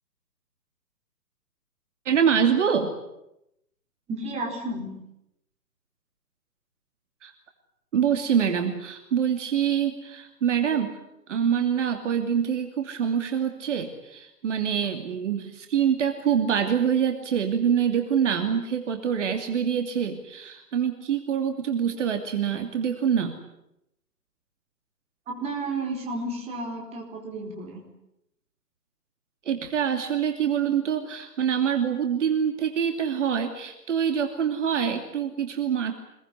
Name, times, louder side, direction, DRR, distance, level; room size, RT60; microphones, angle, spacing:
voice 1, 2.0-2.9 7.2-7.3 7.9-11.0 11.3-23.4 29.4-35.9, right 8 dB, 45° right, 6 dB, 2.8 m, -25 dB
voice 2, 4.1-5.0 25.3-27.8, right 2 dB, 15° right, 1 dB, 4.3 m, -32 dB
25.0 x 22.0 x 9.8 m, 0.83 s
figure-of-eight pair, 140°, 49 cm